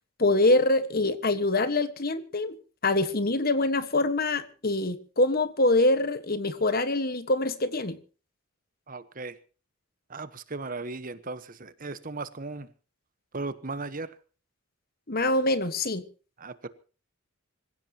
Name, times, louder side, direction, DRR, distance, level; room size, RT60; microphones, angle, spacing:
voice 1, 0.2-2.6 2.8-8.0 15.1-16.0, left 2 dB, 45° left, 1.5 m, -24 dB
voice 2, 8.9-9.3 10.1-12.7 13.3-14.2 16.4-16.7, right 3 dB, 40° right, 1.2 m, -36 dB
26.0 x 16.0 x 3.0 m
head